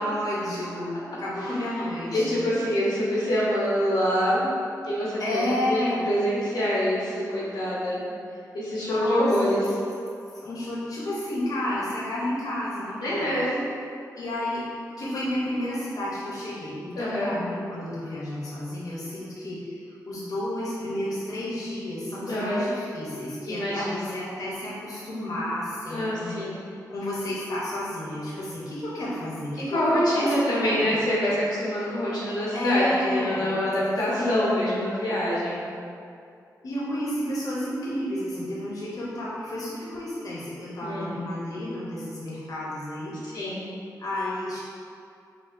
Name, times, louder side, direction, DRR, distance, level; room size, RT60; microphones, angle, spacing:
voice 1, 0.0-2.4 5.2-6.1 8.8-9.3 10.3-13.3 14.1-14.7 15.0-26.6 26.9-31.0 32.5-33.5 34.2-34.6 36.6-43.6 44.0-44.6, left 1 dB, 60° left, -7 dB, 0.7 m, -31 dB
voice 2, 1.8-4.5 4.8-8.0 8.5-9.6 13.0-13.6 16.9-17.3 22.3-22.7 23.4-24.1 25.9-26.6 29.7-32.8 33.1-35.6 40.8-41.1 43.2-43.6, equal, 90° left, -7 dB, 0.8 m, -26 dB
4.3 x 2.3 x 2.5 m, 2.4 s
cardioid pair, 65°, 7 cm